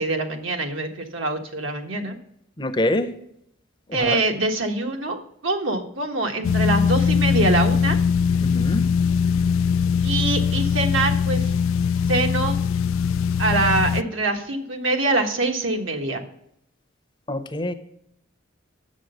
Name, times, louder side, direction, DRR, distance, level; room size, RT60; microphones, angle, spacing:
voice 1, 0.0-2.2 3.9-5.2 5.4-8.0 10.0-11.5 12.1-12.6 13.4-16.2, right 2 dB, 70° right, 4 dB, 1.4 m, -24 dB
voice 2, 2.6-3.1 3.9-4.2 8.4-8.8 17.3-17.7, left 1 dB, 25° left, 9 dB, 0.7 m, -25 dB
sound 1, 6.4-14.0, left 6 dB, 75° left, 0.3 m, -21 dB
7.8 x 6.3 x 7.9 m, 0.74 s
head